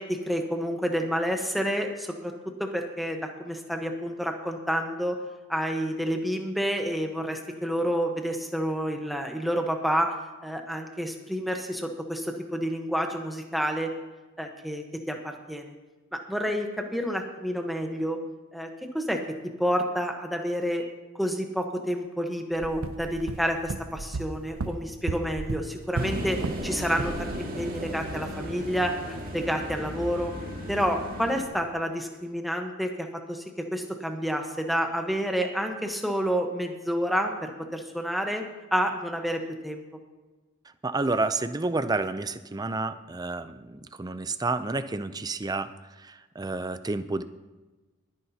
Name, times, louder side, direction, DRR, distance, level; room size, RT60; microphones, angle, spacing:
voice 1, 0.0-2.3 2.6-5.2 5.5-10.1 10.4-13.9 14.4-15.7 16.1-18.2 18.5-19.2 19.6-20.8 21.1-30.3 30.7-38.5 38.7-39.8, equal, ahead, 3 dB, 1.0 m, -29 dB
sound 1, 22.6-26.7 27.0-27.3, right 3 dB, 70° right, 0.6 m, -34 dB
sound 2, 25.9-31.4, equal, 40° right, 2.0 m, -35 dB
voice 2, 40.8-47.2, right 3 dB, 20° right, 11 dB, 0.4 m, -30 dB
23.0 x 9.8 x 2.8 m, 1.2 s
head